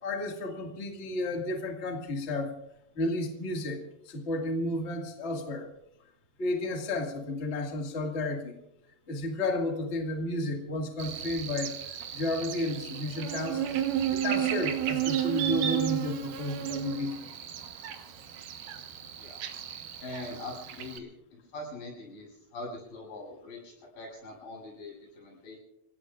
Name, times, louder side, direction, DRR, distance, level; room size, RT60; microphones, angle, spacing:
voice 1, 0.0-2.5 3.0-5.7 6.4-8.6 9.1-13.6 14.1-17.3, left 2 dB, 25° left, 2 dB, 1.7 m, -32 dB
Buzz, 11.0-21.0, right 10 dB, 70° right, 2.8 m, -33 dB
voice 2, 20.0-21.1 21.5-22.3 22.5-25.6, left 2 dB, 80° left, -3 dB, 9.8 m, -42 dB
30.0 x 17.5 x 2.5 m, 0.81 s
omnidirectional pair, 4.0 m